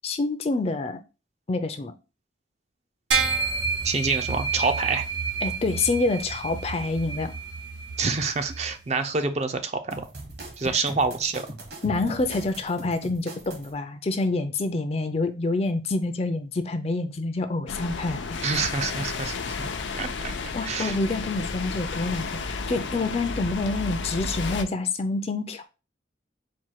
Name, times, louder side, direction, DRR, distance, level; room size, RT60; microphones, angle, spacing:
voice 1, 0.0-1.0 1.5-1.9 5.4-7.3 10.6-10.8 11.8-18.4 20.5-25.6, left 3 dB, 35° left, 0.4 m, -27 dB
sound 1, 3.1-8.7, right 5 dB, 85° right, 1.2 m, -29 dB
voice 2, 3.8-5.1 8.0-10.0 10.6-11.5 18.4-20.3 20.6-21.0, right 4 dB, 35° right, 0.4 m, -27 dB
Virgin Break, 9.9-13.7, right 1 dB, 60° right, 1.1 m, -40 dB
sound 2, 17.7-24.6, left 4 dB, 85° left, 0.5 m, -32 dB
4.3 x 2.2 x 4.6 m
head